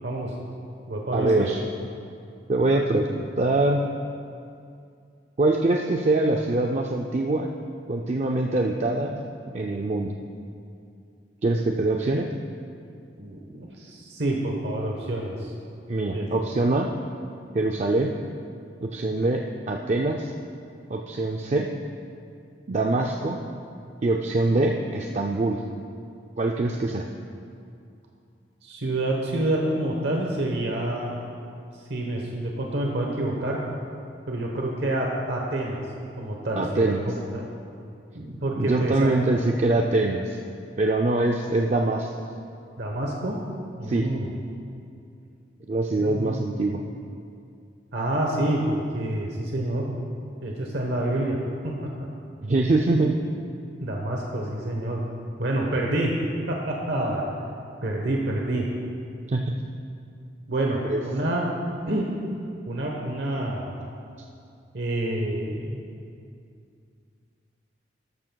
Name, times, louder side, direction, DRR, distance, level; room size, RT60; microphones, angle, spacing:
voice 1, 0.0-0.3 0.9-1.5 13.2-15.5 16.1-16.3 28.6-31.2 31.9-33.6 34.3-35.8 36.2-37.5 38.1-39.5 42.8-43.4 43.8-44.3 45.9-46.4 47.9-49.9 50.4-51.4 51.6-51.9 53.6-55.0 55.4-56.1 56.5-57.2 57.8-58.7 60.5-61.4 61.9-62.1 62.7-63.8 64.7-65.8, right 1 dB, 75° right, -1 dB, 1.0 m, -28 dB
voice 2, 1.1-1.6 2.5-3.9 5.4-7.5 7.9-9.2 9.5-10.1 11.4-12.3 15.9-16.9 17.5-18.1 18.8-20.3 20.9-21.7 22.7-23.4 24.0-25.6 26.4-27.1 36.6-37.1 38.6-40.4 40.8-42.1 43.8-44.1 45.7-46.8 52.4-53.2 59.3-59.6 60.8-61.0, right 2 dB, 40° right, 1 dB, 0.4 m, -24 dB
13.5 x 12.5 x 2.3 m, 2.4 s
head